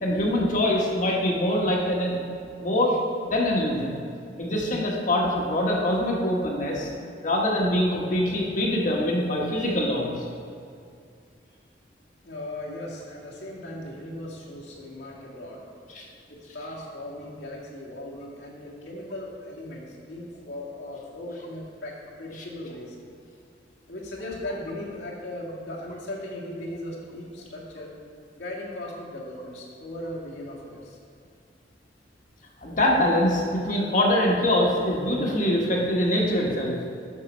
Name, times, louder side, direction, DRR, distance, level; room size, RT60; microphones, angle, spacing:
voice 1, 0.0-2.2 2.6-3.0 3.2-4.0 4.4-6.9 7.2-10.3 15.9-16.1 32.6-36.8, left 1 dB, 45° left, -2 dB, 1.2 m, -24 dB
voice 2, 12.2-15.8 16.0-23.0 23.9-27.9 28.4-31.0, left 1 dB, 85° left, -5 dB, 2.0 m, -38 dB
7.5 x 6.5 x 5.1 m, 2.4 s
head